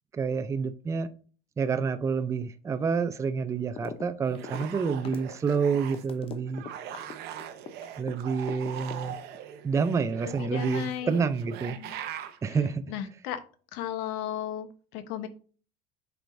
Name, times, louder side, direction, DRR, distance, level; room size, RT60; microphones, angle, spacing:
voice 1, 0.1-1.1 1.6-6.6 8.0-9.2 9.6-11.8 12.4-12.8, right 5 dB, 15° right, 0.4 m, -28 dB
sound 1, 3.8-4.1 4.3-8.1 8.5-9.4, left 6 dB, 30° left, 0.7 m, -40 dB
sound 2, 4.2-6.1 6.5-12.4, right 10 dB, 60° right, 0.8 m, -41 dB
voice 2, 10.3-11.2 11.6-11.9 12.9-13.4 13.7-15.3, left 10 dB, 80° left, 1.0 m, -35 dB
7.7 x 4.7 x 2.6 m
cardioid pair, 140°, 19 cm